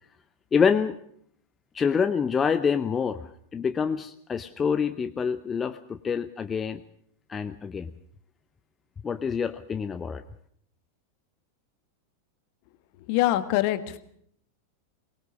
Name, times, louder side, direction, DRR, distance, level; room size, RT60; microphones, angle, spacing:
voice 1, 0.5-1.0 1.7-6.8 7.3-7.9 9.0-10.2, left 6 dB, 20° left, 10 dB, 0.8 m, -26 dB
voice 2, 13.1-14.0, left 15 dB, 45° left, 11 dB, 1.6 m, -24 dB
23.5 x 19.5 x 6.2 m, 0.66 s
figure-of-eight pair, 90°, 0 cm